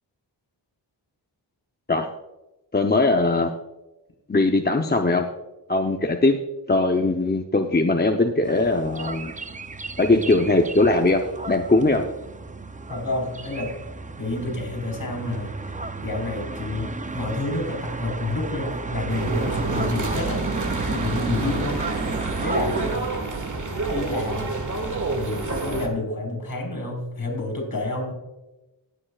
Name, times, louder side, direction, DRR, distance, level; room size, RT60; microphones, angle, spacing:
voice 1, 2.7-3.5 4.3-5.3 5.7-6.4 6.7-9.3 10.0-12.0, left 2 dB, 20° left, 3 dB, 0.7 m, -20 dB
sound 1, 8.4-23.0, right 3 dB, 20° right, 0.5 m, -32 dB
voice 2, 12.9-13.7 14.2-15.7 16.0-20.5 20.8-21.8 22.4-22.8 23.9-24.5 25.1-28.1, left 2 dB, 50° left, 1 dB, 4.3 m, -29 dB
sound 2, 19.1-25.9, right 3 dB, 45° right, 1.7 m, -29 dB
20.0 x 8.8 x 2.4 m, 1.0 s
wide cardioid pair, 80°, 44 cm